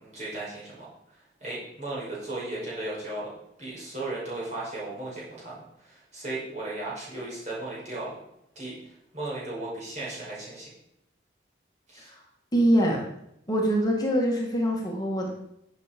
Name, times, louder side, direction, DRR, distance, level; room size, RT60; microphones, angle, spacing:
voice 1, 0.0-3.3 3.6-8.2 8.6-10.7 11.9-12.1, right 2 dB, 40° right, -6 dB, 5.3 m, -36 dB
voice 2, 12.5-13.0 13.5-15.3, equal, 20° left, -1 dB, 1.9 m, -24 dB
12.0 x 7.4 x 5.2 m, 0.78 s
head